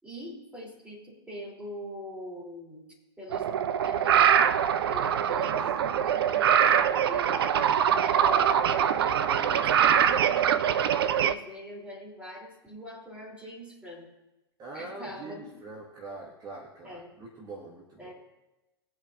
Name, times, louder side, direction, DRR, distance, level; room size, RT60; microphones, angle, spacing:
voice 1, 0.0-3.5 3.8-4.6 4.9-7.4 7.8-10.8 11.2-14.1 14.7-15.5 16.8-17.1 18.0-18.1, equal, 10° right, -3 dB, 3.3 m, -43 dB
sound 1, 3.3-11.3, right 9 dB, 60° right, 0.6 m, -23 dB
voice 2, 5.2-5.5 5.8-6.5 14.6-18.1, right 2 dB, 30° right, -2 dB, 1.8 m, -44 dB
19.5 x 8.2 x 2.6 m, 1.0 s
figure-of-eight pair, 90°, 14 cm